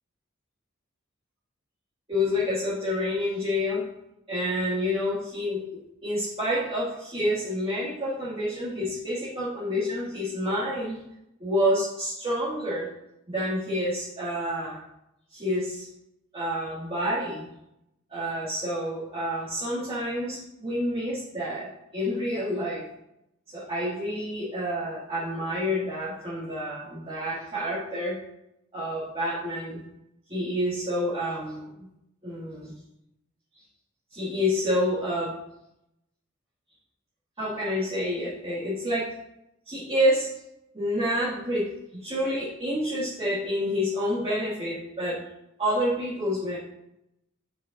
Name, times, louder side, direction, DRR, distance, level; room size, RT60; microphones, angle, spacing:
voice 1, 2.1-3.8 4.3-11.0 11.4-12.9 13.3-14.8 15.3-15.9 16.3-17.5 18.1-22.8 23.5-28.2 28.7-29.8 30.3-31.9 32.2-32.7 34.1-35.3 37.4-39.1 39.7-40.3 40.7-45.2 45.6-46.6, equal, 30° right, -10 dB, 2.2 m, -28 dB
8.5 x 7.4 x 2.6 m, 0.83 s
head